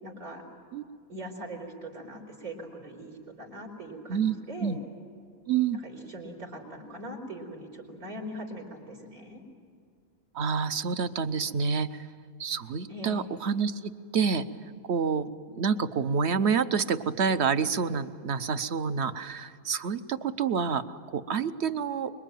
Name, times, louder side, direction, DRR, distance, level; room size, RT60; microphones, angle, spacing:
voice 1, 0.0-0.4 1.1-4.8 5.7-9.4 12.9-13.3, right 1 dB, 80° right, -1 dB, 5.1 m, -41 dB
voice 2, 4.1-4.8 5.5-5.8 10.3-12.1 12.4-14.5 14.9-22.1, right 6 dB, 55° right, 11 dB, 1.1 m, -28 dB
25.5 x 22.5 x 9.2 m, 2.2 s
omnidirectional pair, 1.5 m